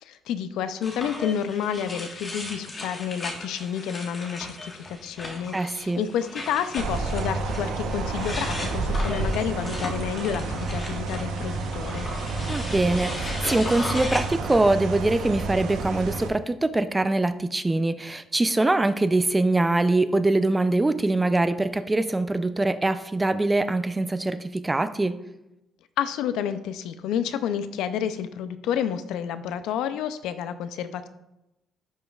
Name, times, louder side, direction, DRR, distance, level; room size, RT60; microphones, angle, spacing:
voice 1, 0.0-12.1 26.0-31.1, left 8 dB, 85° left, 11 dB, 0.5 m, -30 dB
sound 1, 0.8-14.6, left 2 dB, 30° left, 1.4 m, -37 dB
voice 2, 5.5-6.0 12.5-25.2, right 2 dB, 15° right, 12 dB, 0.4 m, -23 dB
sound 2, 6.8-16.3, right 3 dB, 85° right, 0.9 m, -30 dB
11.0 x 5.1 x 2.4 m, 0.90 s
cardioid pair, 110°, 0 cm